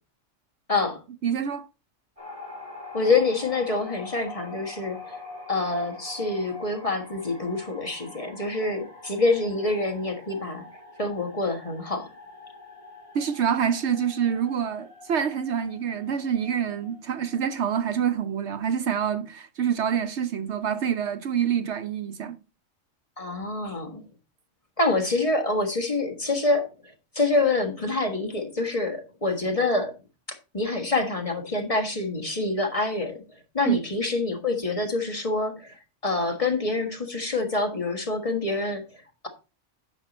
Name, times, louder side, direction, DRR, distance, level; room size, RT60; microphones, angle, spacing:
voice 1, 1.2-1.7 13.1-22.4 33.6-33.8, right 8 dB, 65° right, 0.9 m, -26 dB
sound 1, 2.2-18.1, left 3 dB, 25° right, 2.7 m, -44 dB
voice 2, 2.9-5.2 5.5-10.6 11.0-12.1 23.2-24.0 24.8-26.7 27.1-29.9 30.5-33.2 33.5-39.3, left 3 dB, 25° left, 1.5 m, -26 dB
9.9 x 6.5 x 4.1 m
omnidirectional pair, 1.3 m